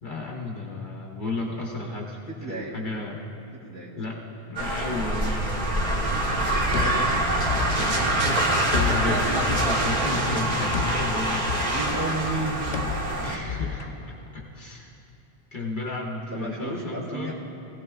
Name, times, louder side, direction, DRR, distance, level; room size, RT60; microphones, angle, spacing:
voice 1, 0.0-2.2 2.5-3.2 3.9-4.2 4.5-5.5 8.2-11.5 13.2-15.0 15.5-17.3, left 2 dB, 50° left, -1 dB, 1.1 m, -33 dB
voice 2, 2.3-2.7 3.6-3.9 4.7-5.0 5.9-6.0 6.7-7.1 11.6-12.7 16.3-17.3, right 2 dB, 20° right, -7 dB, 2.9 m, -33 dB
sound 1, 4.6-13.4, right 1 dB, 55° right, 1.4 m, -25 dB
sound 2, 6.7-14.7, left 6 dB, 90° left, 0.9 m, -32 dB
19.0 x 16.5 x 2.3 m, 2.9 s
omnidirectional pair, 1.1 m